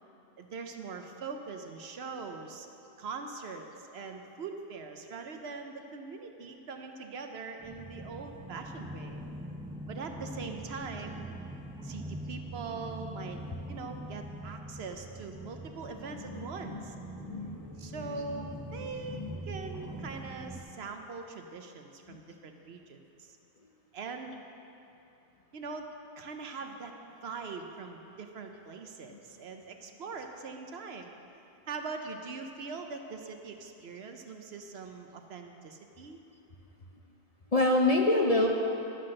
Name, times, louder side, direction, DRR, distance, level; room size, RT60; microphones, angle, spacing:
voice 1, 0.4-2.7 3.0-9.2 9.9-11.2 11.8-13.4 13.7-16.9 17.8-23.4 23.9-24.4 25.5-25.9 26.2-26.9 27.2-31.1 31.7-36.2, right 4 dB, 65° right, 5 dB, 0.9 m, -42 dB
sound 1, 7.6-20.6, right 1 dB, 5° right, 0.3 m, -43 dB
voice 2, 16.1-16.8 17.1-18.5 18.7-19.4 22.1-22.2 29.1-29.2 37.5-38.5, left 2 dB, 40° left, 0 dB, 0.6 m, -29 dB
12.0 x 5.8 x 6.4 m, 2.8 s
omnidirectional pair, 1.2 m